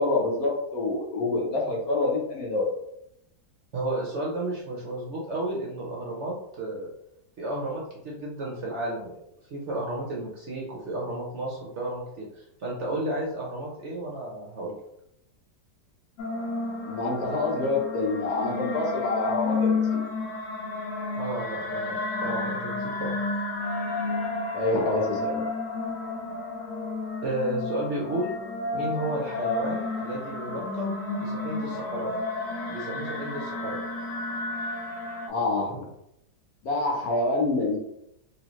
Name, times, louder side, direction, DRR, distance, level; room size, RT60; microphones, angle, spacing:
voice 1, 0.0-2.7 16.9-19.8 24.5-25.4 35.3-35.9 36.6-37.8, left 2 dB, 65° left, -2 dB, 1.4 m, -26 dB
voice 2, 3.7-6.9 7.4-9.2 9.5-14.8 21.2-23.1 27.2-28.3 28.7-32.1 32.7-33.8, right 1 dB, 55° right, -3 dB, 0.9 m, -32 dB
sound 1, 16.2-35.3, left 3 dB, 80° left, 1.3 m, -31 dB
3.8 x 3.1 x 3.0 m, 0.79 s
omnidirectional pair, 1.8 m